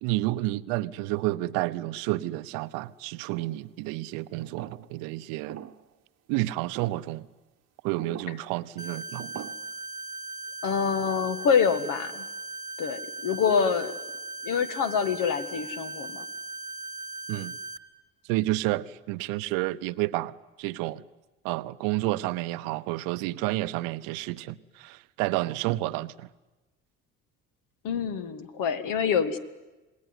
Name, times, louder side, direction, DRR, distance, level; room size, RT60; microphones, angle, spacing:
voice 1, 0.0-5.6 6.3-7.2 7.8-9.5 17.3-17.6 18.3-21.0 21.4-26.3, right 18 dB, 65° right, 0.8 m, -30 dB
sound 1, 3.3-3.7 4.4-5.0 5.5-5.9 6.7-7.1 8.0-8.4 9.2-9.5, right 11 dB, 45° right, 1.1 m, -42 dB
sound 2, 8.8-17.8, right 2 dB, 10° right, 1.5 m, -38 dB
voice 2, 10.6-12.2 12.8-13.9 14.4-16.2 27.8-29.4, left 6 dB, 60° left, 1.8 m, -26 dB
27.0 x 20.0 x 9.7 m
hypercardioid pair, 55°, 36 cm